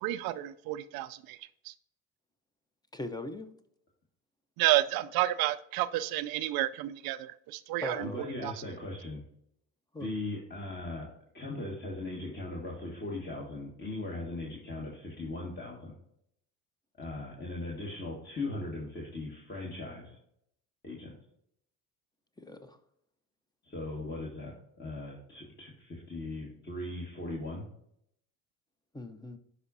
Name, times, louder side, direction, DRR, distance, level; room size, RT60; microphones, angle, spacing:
voice 1, 0.0-1.4 1.7-1.8 4.6-8.1 8.4-8.5, right 15 dB, 65° right, 15 dB, 0.5 m, -30 dB
voice 2, 2.9-3.5 7.8-8.3 9.9-10.1 22.4-22.8 28.9-29.4, left 1 dB, 10° left, 9 dB, 0.8 m, -40 dB
voice 3, 8.0-9.2 10.0-11.1 11.3-15.9 17.0-20.2 20.8-21.1 23.6-27.7, left 2 dB, 25° left, -3 dB, 1.9 m, -39 dB
11.0 x 5.0 x 2.7 m, 0.72 s
supercardioid pair, 75°, 39 cm